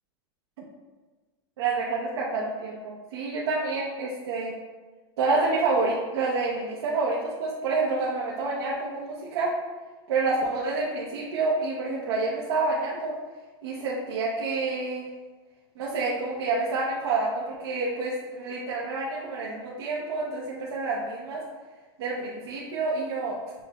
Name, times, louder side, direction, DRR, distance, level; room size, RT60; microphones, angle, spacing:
voice 1, 1.6-4.5 5.2-9.5 10.1-13.1 13.6-15.1 15.8-21.4 22.0-23.4, right 3 dB, 80° right, -5 dB, 0.8 m, -28 dB
6.3 x 2.9 x 2.3 m, 1.3 s
supercardioid pair, 145°, 13 cm